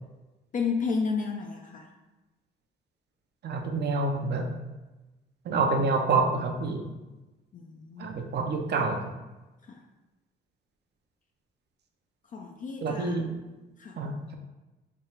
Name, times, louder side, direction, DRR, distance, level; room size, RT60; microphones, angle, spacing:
voice 1, 0.5-1.9 7.5-8.2 9.7-9.8 12.3-13.2 13.8-14.0, left 5 dB, 40° left, 2 dB, 0.4 m, -32 dB
voice 2, 3.4-4.5 5.4-6.9 8.0-9.0 12.8-13.3 14.0-14.3, right 3 dB, 60° right, 4 dB, 0.6 m, -27 dB
3.3 x 2.3 x 4.4 m, 1.1 s
cardioid pair, 90°, 20 cm